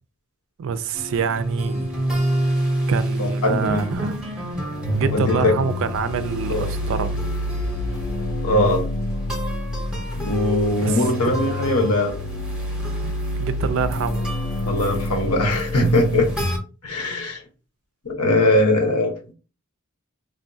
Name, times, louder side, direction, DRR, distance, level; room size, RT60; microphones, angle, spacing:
voice 1, 0.6-1.9 2.9-4.2 4.9-7.2 10.8-11.0 13.0-14.2, right 6 dB, 60° right, 0.3 m, -26 dB
sound 1, 0.9-16.6, right 1 dB, 5° right, 0.6 m, -30 dB
voice 2, 3.2-3.9 5.1-5.5 6.5-6.7 8.4-8.8 10.2-12.2 14.7-16.3 16.8-17.4 18.0-19.3, left 1 dB, 85° left, 0.9 m, -20 dB
sound 2, 4.6-16.6, left 1 dB, 45° left, 0.4 m, -28 dB
3.5 x 2.3 x 2.6 m
head